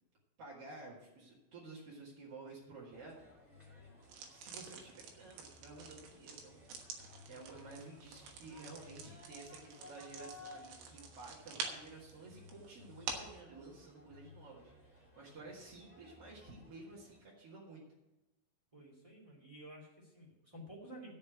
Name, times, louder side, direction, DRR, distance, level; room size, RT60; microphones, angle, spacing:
voice 1, 0.4-3.6 4.3-6.9 7.3-17.8, right 3 dB, 50° right, -5 dB, 1.8 m, -53 dB
sound 1, 2.9-17.2, left 2 dB, 5° right, 1.6 m, -58 dB
sound 2, 4.0-13.4, right 5 dB, 80° right, 3.6 m, -48 dB
voice 2, 18.7-21.1, right 1 dB, 20° right, -4 dB, 0.8 m, -52 dB
13.5 x 5.5 x 8.0 m, 1.0 s
omnidirectional pair, 5.1 m